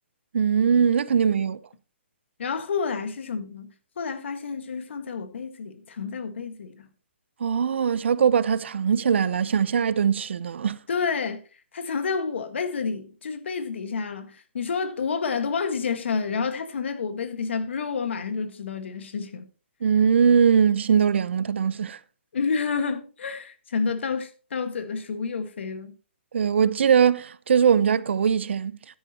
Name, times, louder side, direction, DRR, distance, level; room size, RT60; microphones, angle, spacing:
voice 1, 0.3-1.6 7.4-10.8 19.8-22.0 26.3-28.8, right 7 dB, 70° right, 0.7 m, -21 dB
voice 2, 2.4-6.9 10.9-11.4 11.7-19.5 22.3-26.0, left 5 dB, 70° left, 1.6 m, -29 dB
13.0 x 10.5 x 2.9 m
hypercardioid pair, 160°, 7 cm